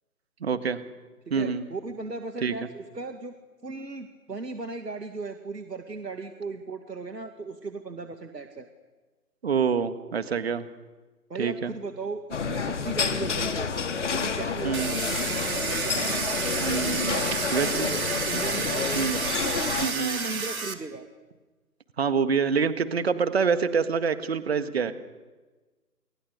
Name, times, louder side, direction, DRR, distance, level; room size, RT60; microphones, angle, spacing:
voice 1, 0.4-0.8 1.3-1.6 2.4-2.5 9.4-10.6 11.4-11.7 14.6-14.9 16.6-17.1 17.5-17.9 18.3-18.4 19.0-19.2 19.8-20.2 22.0-24.9, right 6 dB, 40° right, 10 dB, 1.8 m, -26 dB
voice 2, 1.3-3.3 3.6-8.7 11.3-13.7 13.9-16.3 16.9-17.3 17.6-21.1, right 3 dB, 85° right, 6 dB, 2.3 m, -37 dB
sound 1, 12.3-19.9, left 5 dB, 45° left, 2.5 m, -29 dB
Domestic sounds home sounds, 14.7-20.7, right 5 dB, 60° right, 3.2 m, -30 dB
29.5 x 29.0 x 6.7 m, 1.3 s
figure-of-eight pair, 150°, 48 cm